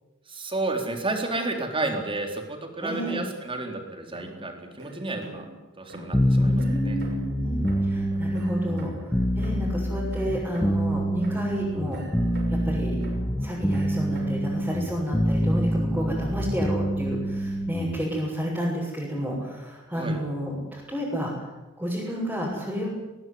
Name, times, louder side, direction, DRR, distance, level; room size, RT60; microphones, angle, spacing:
voice 1, 0.3-5.5 5.8-7.0 19.9-20.2, right 2 dB, 25° right, 4 dB, 4.1 m, -31 dB
voice 2, 2.8-3.2 6.4-12.0 12.5-13.0 13.4-21.3 21.8-22.9, equal, 5° right, -7 dB, 6.8 m, -31 dB
sound 1, 4.1-5.6 5.9-7.4 7.6-11.0 11.2-12.7 13.0-14.5, right 1 dB, 50° right, 6.5 m, -44 dB
sound 2, 6.1-18.0, equal, 15° left, 1.6 m, -26 dB
21.0 x 19.5 x 9.7 m, 1.1 s
head